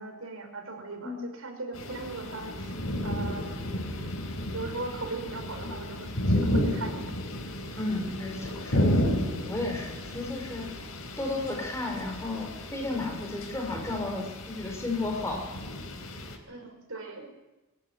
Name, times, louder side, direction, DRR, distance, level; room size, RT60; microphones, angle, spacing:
voice 1, 0.0-2.8 3.0-3.6 4.5-7.0 16.5-17.3, right 3 dB, 80° right, 4 dB, 5.4 m, -38 dB
sound 1, 1.7-16.4, left 1 dB, 85° left, 4.4 m, -32 dB
voice 2, 7.8-8.9 9.3-10.7 11.2-15.4, left 2 dB, 15° left, 1 dB, 5.1 m, -33 dB
22.5 x 15.0 x 9.8 m, 1.0 s
head